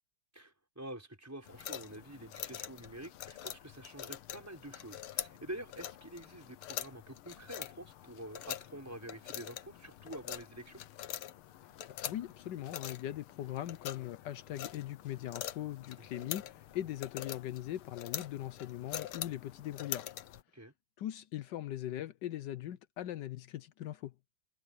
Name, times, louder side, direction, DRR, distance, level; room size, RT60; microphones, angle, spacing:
voice 1, 0.3-10.8 16.0-16.4 20.5-20.7, right 1 dB, 5° right, 5.9 m, -47 dB
sound 1, 1.5-20.4, left 12 dB, 90° left, 1.8 m, -44 dB
voice 2, 12.0-20.1 21.0-24.1, left 12 dB, 70° left, 1.2 m, -40 dB
omnidirectional pair, 2.3 m